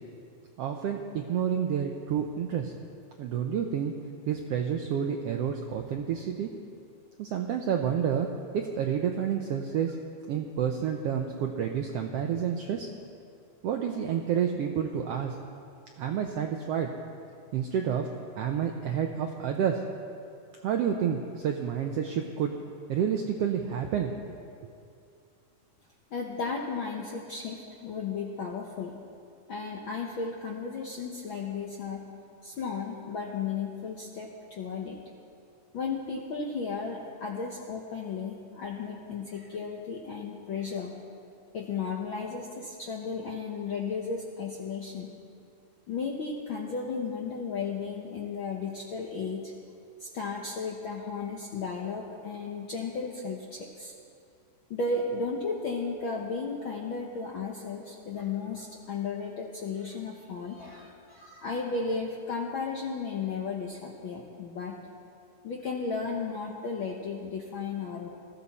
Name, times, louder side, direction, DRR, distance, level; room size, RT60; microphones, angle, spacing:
voice 1, 0.6-2.7 3.2-3.9 4.3-6.5 7.2-8.3 8.5-9.9 10.3-12.9 13.6-15.3 16.0-16.9 17.5-18.1 18.4-19.8 20.6-22.5 22.9-24.1 24.6-24.7, right 8 dB, 80° right, 3 dB, 1.4 m, -29 dB
voice 2, 26.1-29.0 29.5-32.0 32.4-35.0 35.7-40.9 41.5-45.1 45.9-49.5 50.0-53.9 54.7-64.8 65.4-68.1, left 4 dB, 70° left, -1 dB, 1.2 m, -34 dB
20.0 x 14.5 x 4.2 m, 2.4 s
omnidirectional pair, 3.6 m